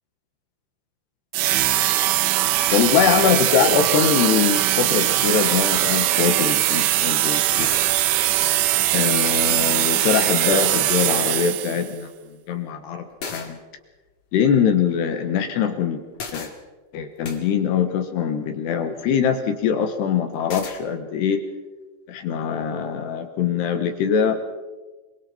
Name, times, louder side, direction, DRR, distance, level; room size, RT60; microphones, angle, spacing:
sound 1, 1.3-11.9, right 14 dB, 80° right, 3.1 m, -21 dB
voice 1, 2.7-7.7 8.9-12.1 12.5-13.1 13.3-13.6 14.3-16.0 16.3-16.5 16.9-21.4 22.1-24.4, left 7 dB, 65° left, 6 dB, 3.0 m, -22 dB
sound 2, 7.6-7.9 9.4-9.5 10.0-10.3 13.2-13.5 16.1-16.5 17.2-17.4 20.5-20.8, left 4 dB, 40° left, 2.7 m, -34 dB
27.0 x 23.5 x 4.4 m, 1.2 s
omnidirectional pair, 5.9 m